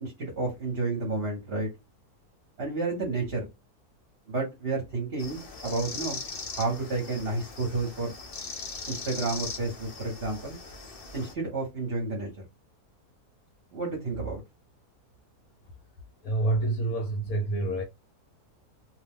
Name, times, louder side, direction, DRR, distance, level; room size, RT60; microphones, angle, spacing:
voice 1, 0.0-1.7 2.6-3.4 4.3-6.2 6.6-8.1 8.9-10.6 11.1-12.3 13.7-14.4, right 3 dB, 45° right, 1.0 m, -31 dB
sound 1, 5.2-11.3, left 4 dB, 45° left, 0.9 m, -40 dB
voice 2, 16.2-17.8, right 2 dB, 75° left, 1.0 m, -27 dB
2.6 x 2.2 x 3.4 m
omnidirectional pair, 1.7 m